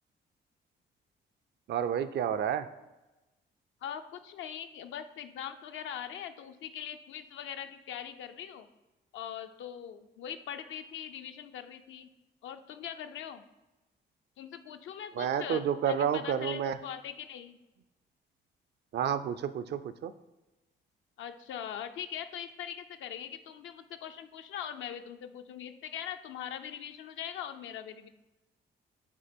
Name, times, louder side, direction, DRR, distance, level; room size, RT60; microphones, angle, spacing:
voice 1, 1.7-2.7 15.1-16.8 18.9-20.1, right 8 dB, 60° right, 12 dB, 0.4 m, -30 dB
voice 2, 3.8-8.7 9.1-12.1 12.4-13.4 14.4-17.6 21.2-28.1, left 9 dB, 75° left, 8 dB, 0.5 m, -41 dB
7.9 x 2.9 x 4.4 m, 1.0 s
cardioid pair, 90°, 20 cm